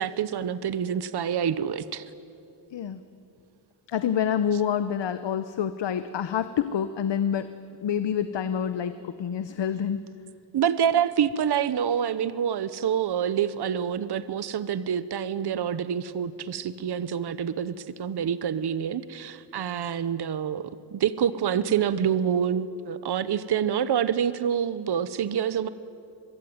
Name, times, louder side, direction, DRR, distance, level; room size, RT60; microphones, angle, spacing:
voice 1, 0.0-2.1 10.5-25.7, right 8 dB, 65° right, 14 dB, 0.9 m, -27 dB
voice 2, 3.9-7.5 7.8-10.0, left 8 dB, 75° left, 11 dB, 0.9 m, -27 dB
24.5 x 22.5 x 9.5 m, 2.6 s
wide cardioid pair, 130°, 43 cm